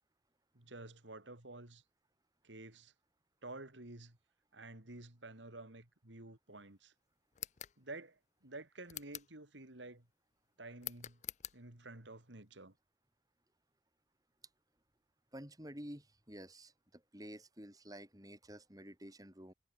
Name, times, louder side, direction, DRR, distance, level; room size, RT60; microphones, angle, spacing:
voice 1, 0.5-1.8 2.4-2.9 3.4-4.2 4.5-6.9 7.8-10.1 10.6-11.2 11.5-12.7, right 2 dB, 80° right, 3.2 m, -51 dB
sound 1, 7.3-7.8 8.9-9.4 10.8-11.6, left 14 dB, 40° left, 0.5 m, -46 dB
voice 2, 15.3-19.5, equal, 20° right, 4.7 m, -51 dB
head